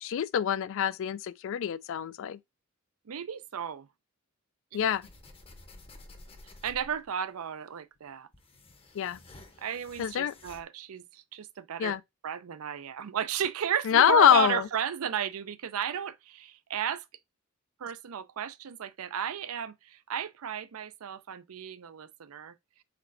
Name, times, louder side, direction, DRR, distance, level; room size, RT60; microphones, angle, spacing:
voice 1, 0.0-2.4 4.7-5.1 8.9-9.2 10.0-10.3 11.8-12.0 13.9-14.7, left 9 dB, 60° left, 0.3 m, -25 dB
voice 2, 3.1-3.9 4.7-4.8 6.6-8.3 9.6-12.0 12.2-17.1 17.8-22.5, right 8 dB, 80° right, 0.5 m, -34 dB
sound 1, 4.7-7.1 7.9-10.6, left 2 dB, 25° left, 0.7 m, -52 dB
4.3 x 4.1 x 2.5 m
head